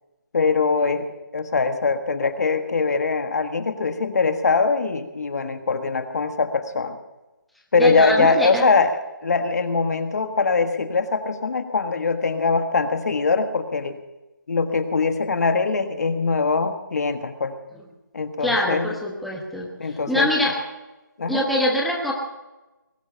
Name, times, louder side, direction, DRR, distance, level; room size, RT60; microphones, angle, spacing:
voice 1, 0.3-1.1 1.3-7.0 7.7-14.0 14.5-17.5 18.1-19.0 19.8-20.3 21.2-21.5, left 4 dB, 50° left, 8 dB, 1.5 m, -22 dB
voice 2, 7.8-8.7 18.4-19.7 20.1-20.6 21.3-22.1, left 1 dB, ahead, -2 dB, 1.2 m, -23 dB
20.5 x 11.5 x 5.7 m, 1.1 s
figure-of-eight pair, 160°, 11 cm